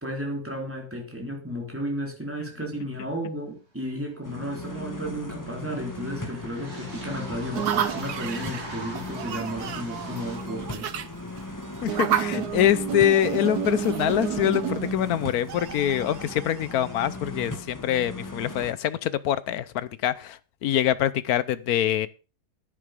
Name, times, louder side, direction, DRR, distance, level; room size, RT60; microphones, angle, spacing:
voice 1, 0.0-10.9, equal, 5° right, 3.7 m, -33 dB
sound 1, 3.9-4.0 4.1-10.4, right 2 dB, 40° right, 3.3 m, -42 dB
sound 2, 4.2-18.7, left 2 dB, 10° left, 1.2 m, -38 dB
sound 3, 7.5-17.1, right 8 dB, 75° right, 1.4 m, -31 dB
voice 2, 11.8-22.1, left 11 dB, 65° left, 1.2 m, -25 dB
10.5 x 10.5 x 5.1 m
omnidirectional pair, 1.8 m